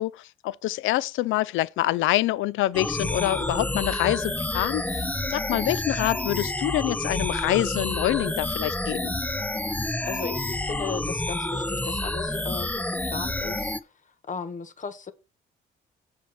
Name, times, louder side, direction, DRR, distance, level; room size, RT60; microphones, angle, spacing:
voice 1, 0.0-9.1, left 16 dB, 80° left, 0.4 m, -26 dB
sound 1, 2.7-13.8, left 2 dB, 10° left, 0.7 m, -29 dB
voice 2, 9.8-15.1, left 5 dB, 40° left, 1.3 m, -36 dB
7.2 x 4.6 x 7.0 m
cardioid pair, 90°, 20 cm